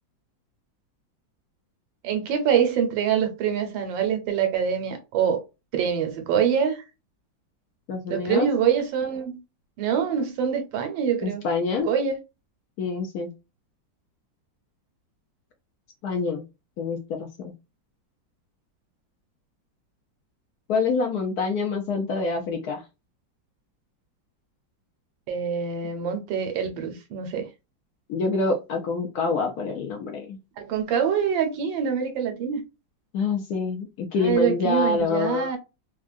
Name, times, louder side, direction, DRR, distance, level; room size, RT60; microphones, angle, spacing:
voice 1, 2.0-5.4 5.7-6.8 8.1-9.4 9.8-11.4 11.8-12.2 25.3-27.5 30.6-32.6 34.2-35.6, right 7 dB, 85° right, 1.5 m, -25 dB
voice 2, 7.9-8.5 11.2-11.9 12.8-13.3 16.0-16.4 16.8-17.5 20.7-22.8 28.1-30.4 33.1-35.5, left 4 dB, 65° left, 1.0 m, -26 dB
3.6 x 2.2 x 2.4 m
omnidirectional pair, 2.0 m